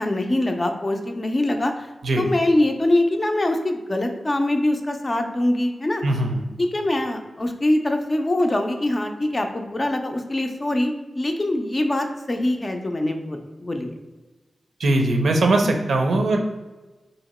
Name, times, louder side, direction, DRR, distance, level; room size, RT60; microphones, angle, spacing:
voice 1, 0.0-1.9 2.2-6.0 6.6-13.9, left 1 dB, 25° left, 4 dB, 0.4 m, -23 dB
voice 2, 6.0-6.4 14.8-16.4, right 2 dB, 75° right, 3 dB, 0.6 m, -20 dB
2.9 x 2.8 x 4.1 m, 1.2 s
wide cardioid pair, 140°, 0 cm